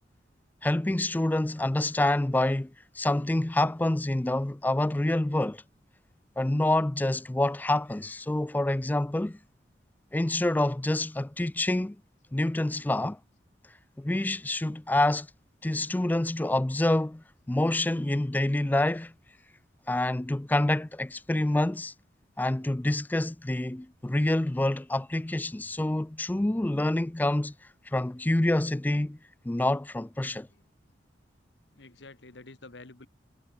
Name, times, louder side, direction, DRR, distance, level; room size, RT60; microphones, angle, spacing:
voice 1, 0.6-2.7 3.0-5.6 6.4-9.4 10.1-12.0 12.3-13.2 14.0-15.3 15.6-19.1 19.9-21.9 22.4-27.5 27.9-29.2 29.4-30.5, left 1 dB, 10° left, 0.4 m, -27 dB
voice 2, 31.7-33.1, left 2 dB, 85° left, 1.8 m, -50 dB
head